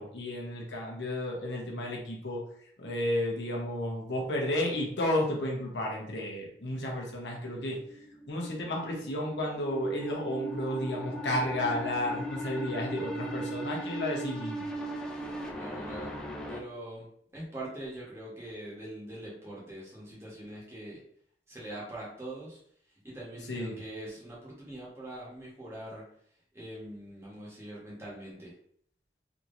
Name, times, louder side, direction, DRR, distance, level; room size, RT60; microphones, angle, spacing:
voice 1, 0.0-2.4 2.8-7.8 8.3-14.7 23.5-23.7, left 1 dB, 85° left, -1 dB, 0.9 m, -32 dB
sound 1, 7.8-16.6, right 1 dB, 5° left, 0.3 m, -38 dB
voice 2, 15.6-16.1 16.5-17.1 17.3-21.0 21.5-22.6 23.0-26.1 26.5-28.5, right 1 dB, 15° right, -6 dB, 1.1 m, -43 dB
3.5 x 2.9 x 2.6 m, 0.64 s
head